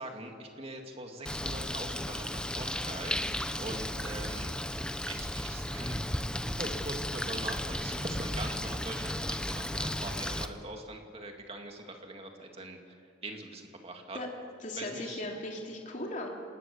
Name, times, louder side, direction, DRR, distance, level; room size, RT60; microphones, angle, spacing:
voice 1, 0.0-4.5 5.1-6.0 6.4-14.2 14.8-15.2, right 2 dB, 30° right, 3 dB, 2.5 m, -42 dB
Bird, 1.3-10.5, left 1 dB, 5° left, 0.8 m, -34 dB
voice 2, 14.6-16.3, left 1 dB, 40° left, 0 dB, 3.1 m, -37 dB
27.5 x 19.0 x 7.2 m, 2.3 s
head